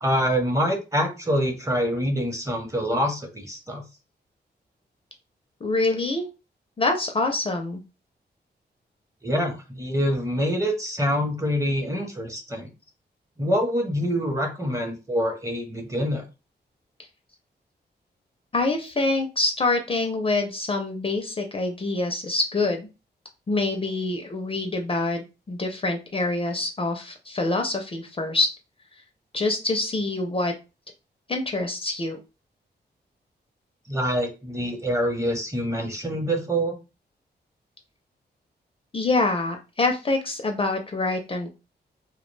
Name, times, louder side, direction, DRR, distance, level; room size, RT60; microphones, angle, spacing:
voice 1, 0.0-3.8 9.2-12.7 13.4-16.2 33.9-36.8, equal, 15° right, 4 dB, 0.7 m, -25 dB
voice 2, 5.6-6.3 6.8-7.8 18.5-22.9 23.5-28.5 29.3-30.5 31.3-32.2 38.9-41.5, left 2 dB, 30° left, 4 dB, 0.4 m, -25 dB
2.2 x 2.1 x 3.1 m, 0.30 s
wide cardioid pair, 95°, 18 cm